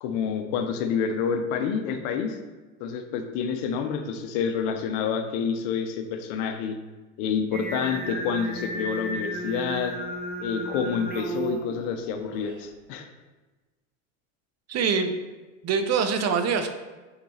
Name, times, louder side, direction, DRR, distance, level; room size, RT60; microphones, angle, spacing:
voice 1, 0.0-2.4 2.8-6.7 7.2-10.0 10.4-13.1, left 6 dB, 65° left, 6 dB, 1.0 m, -28 dB
Singing, 7.5-12.6, right 1 dB, 20° right, 1.2 m, -34 dB
voice 2, 14.7-15.2 15.6-16.7, right 5 dB, 40° right, 8 dB, 0.7 m, -24 dB
7.0 x 4.8 x 3.4 m, 1.2 s
hypercardioid pair, 95°, 41 cm